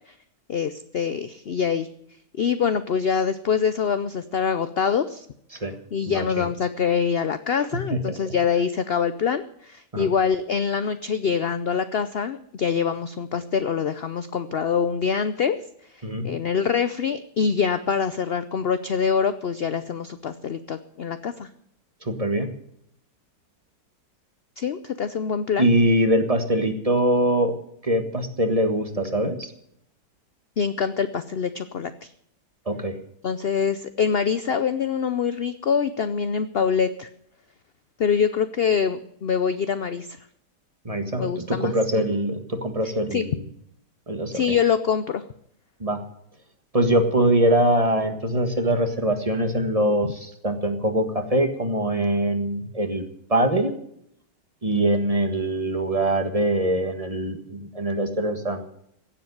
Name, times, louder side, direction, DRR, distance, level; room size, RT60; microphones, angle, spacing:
voice 1, 0.5-1.9 2.4-5.3 5.9-15.6 15.9-21.5 24.6-25.7 30.6-32.1 33.2-37.1 38.0-40.1 41.2-42.0 43.1-43.3 44.3-45.2, left 6 dB, 65° left, 11 dB, 0.6 m, -25 dB
voice 2, 6.1-6.5 7.9-8.3 9.9-10.1 16.0-16.3 22.0-22.5 25.6-27.6 27.8-29.5 32.6-33.0 40.8-43.4 44.1-44.4 45.8-46.0 46.7-53.0 53.3-53.8 54.6-58.7, right 1 dB, 20° right, 7 dB, 1.5 m, -23 dB
16.0 x 7.7 x 9.5 m, 0.73 s
omnidirectional pair, 1.8 m